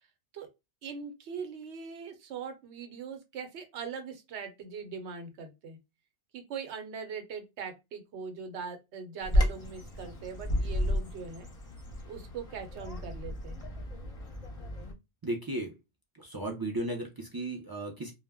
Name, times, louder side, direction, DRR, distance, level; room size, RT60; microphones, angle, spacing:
voice 1, 0.8-5.8 6.3-11.5 12.0-13.6, right 6 dB, 80° right, 1.0 m, -41 dB
Bird vocalization bird call bird song, 9.2-14.9, equal, 40° left, 0.6 m, -32 dB
voice 2, 15.2-15.7 16.2-18.1, right 1 dB, 35° right, 0.3 m, -35 dB
2.1 x 2.1 x 3.4 m
omnidirectional pair, 1.1 m